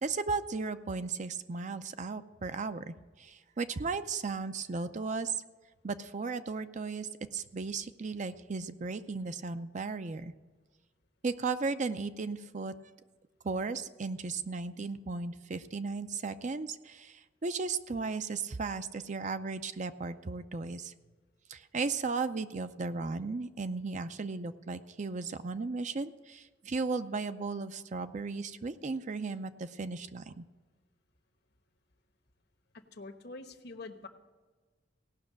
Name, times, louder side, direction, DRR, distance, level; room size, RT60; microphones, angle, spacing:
voice 1, 0.0-5.4 5.8-10.3 11.2-12.7 13.4-20.9 21.5-30.4, right 4 dB, 40° right, 11 dB, 0.5 m, -35 dB
voice 2, 32.7-34.1, left 3 dB, 60° left, 7 dB, 1.1 m, -45 dB
17.0 x 6.1 x 7.4 m, 1.3 s
head